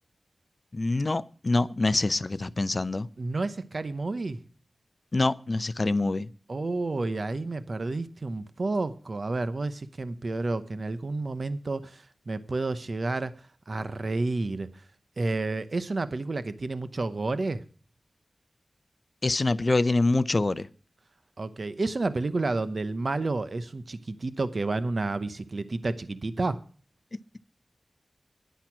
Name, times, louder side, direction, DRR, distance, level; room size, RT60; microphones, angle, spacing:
voice 1, 0.7-3.1 5.1-6.3 19.2-20.7 27.1-27.2, left 2 dB, 35° left, 0.6 m, -25 dB
voice 2, 3.2-4.4 6.5-14.8 15.2-17.6 21.4-26.6, right 3 dB, 50° right, 0.8 m, -30 dB
10.5 x 10.5 x 6.0 m
wide cardioid pair, 95°, 0 cm